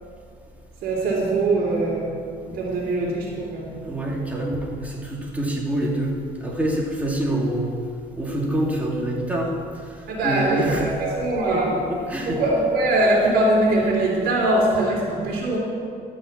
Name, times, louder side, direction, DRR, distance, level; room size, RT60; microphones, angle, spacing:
voice 1, 0.8-2.2 2.4-3.9 10.1-11.7 12.2-15.6, right 2 dB, 75° right, -6 dB, 3.1 m, -22 dB
voice 2, 3.8-7.7 8.2-9.5 10.2-10.9 11.5-11.6 11.9-12.4, right 1 dB, 10° right, -3 dB, 2.6 m, -26 dB
12.5 x 6.1 x 8.5 m, 2.3 s
cardioid pair, 110°, 17 cm